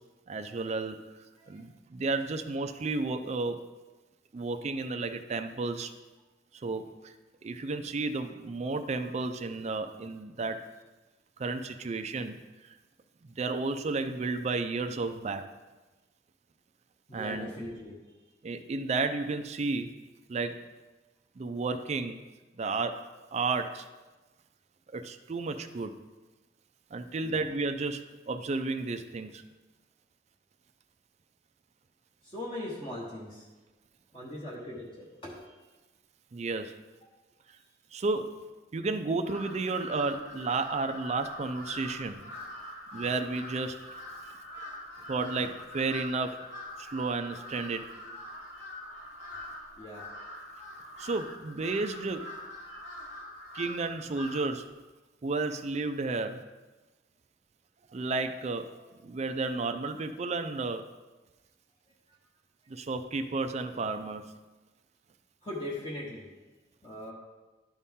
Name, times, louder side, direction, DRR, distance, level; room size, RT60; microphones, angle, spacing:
voice 1, 0.3-1.0 1.5-3.6 4.3-5.9 6.5-7.1 7.4-10.6 11.4-12.4 12.6-12.7 13.2-15.5 17.1-17.5 18.4-19.9 20.3-20.6 21.4-22.2 22.6-23.9 24.9-25.9 26.9-29.4 36.3-36.7 37.9-38.4 38.7-42.3 42.9-43.8 45.1-46.4 46.8-47.9 51.0-52.3 53.5-54.7 55.2-56.5 57.9-58.7 59.0-60.9 62.7-64.3, right 3 dB, 40° right, 7 dB, 0.4 m, -32 dB
voice 2, 17.1-17.9 27.2-27.4 32.2-33.4 34.1-35.4 49.8-50.0 65.4-66.3 66.8-67.1, left 1 dB, 30° left, -6 dB, 1.2 m, -40 dB
Crow, 39.2-54.6, left 1 dB, 80° left, 2.7 m, -44 dB
12.0 x 4.2 x 3.6 m, 1.2 s
head